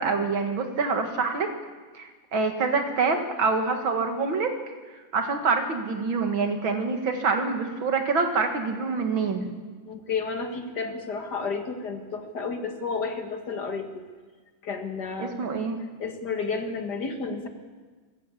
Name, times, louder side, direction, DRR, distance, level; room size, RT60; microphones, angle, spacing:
voice 1, 0.0-1.5 1.9-4.5 5.1-9.5 15.2-15.8, right 4 dB, 85° right, 5 dB, 2.6 m, -26 dB
voice 2, 9.9-14.0 14.6-15.5 16.0-17.5, left 4 dB, 55° left, 5 dB, 2.3 m, -31 dB
20.5 x 15.5 x 8.5 m, 1.4 s
omnidirectional pair, 2.1 m